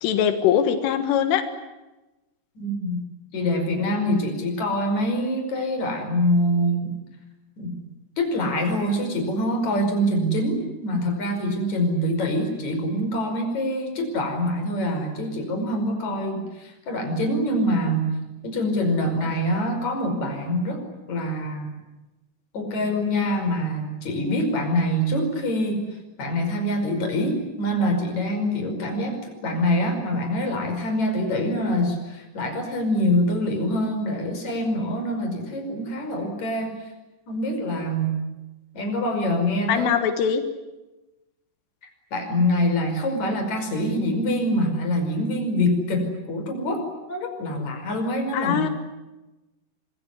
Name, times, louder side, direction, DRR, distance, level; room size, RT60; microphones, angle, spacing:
voice 1, 0.0-1.4 39.7-40.4 48.3-48.7, left 9 dB, 90° left, 8 dB, 4.2 m, -21 dB
voice 2, 2.6-3.0 3.3-6.9 7.6-7.8 8.2-18.1 18.4-21.7 22.5-36.8 37.3-38.2 38.7-40.0 42.1-48.7, equal, 35° left, 5 dB, 6.3 m, -25 dB
25.5 x 23.5 x 9.5 m, 1.1 s
omnidirectional pair, 5.5 m